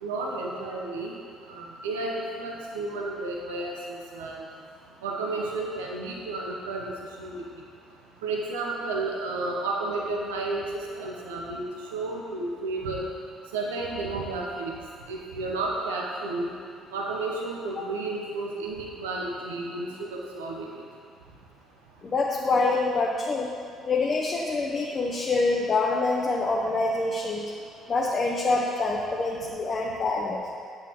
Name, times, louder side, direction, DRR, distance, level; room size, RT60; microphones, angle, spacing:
voice 1, 0.0-1.1 1.5-4.4 5.0-6.8 7.2-7.4 8.2-10.6 11.0-13.0 13.5-14.7 15.1-16.5 16.9-20.8, right 3 dB, 85° right, -2 dB, 0.8 m, -32 dB
voice 2, 22.0-23.5 23.8-27.5 27.9-30.4, left 3 dB, 40° left, -2 dB, 0.8 m, -26 dB
8.6 x 7.9 x 3.0 m, 2.2 s
hypercardioid pair, 50°, 0 cm